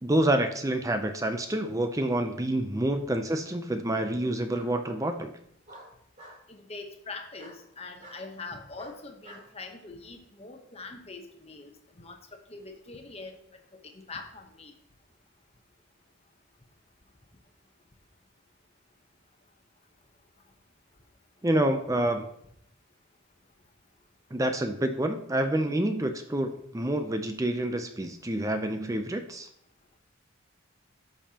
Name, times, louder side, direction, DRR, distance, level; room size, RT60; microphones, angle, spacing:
voice 1, 0.0-5.3 21.4-22.3 24.3-29.5, right 1 dB, 15° right, 7 dB, 0.5 m, -28 dB
Bark, 4.5-4.7 5.7-6.4 7.3-7.6 8.0-8.2 8.7-9.5, equal, 35° right, 2.6 m, -48 dB
voice 2, 6.5-13.3 13.8-14.7, left 3 dB, 30° left, 4 dB, 1.0 m, -43 dB
13.0 x 5.4 x 2.9 m, 0.69 s
head